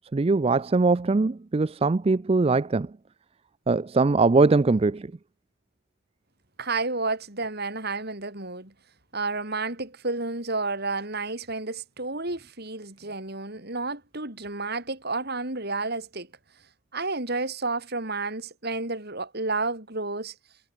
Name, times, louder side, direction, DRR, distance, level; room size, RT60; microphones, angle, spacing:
voice 1, 0.1-2.9 3.7-5.1, right 3 dB, 30° right, 0.4 m, -21 dB
voice 2, 6.6-8.7 9.1-16.3 16.9-20.3, right 3 dB, 50° right, 5.1 m, -31 dB
head